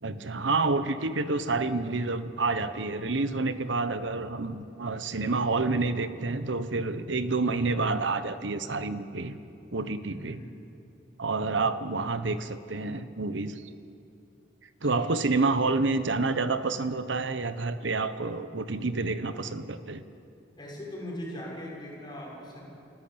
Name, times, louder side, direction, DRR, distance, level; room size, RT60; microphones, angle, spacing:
voice 1, 0.0-9.4 9.7-10.4 11.2-13.6 14.8-20.0, right 3 dB, 90° right, 12 dB, 1.1 m, -28 dB
voice 2, 10.1-10.7 14.8-15.2 20.6-22.6, left 1 dB, 25° left, -3 dB, 6.0 m, -40 dB
29.5 x 14.0 x 8.7 m, 2.8 s
head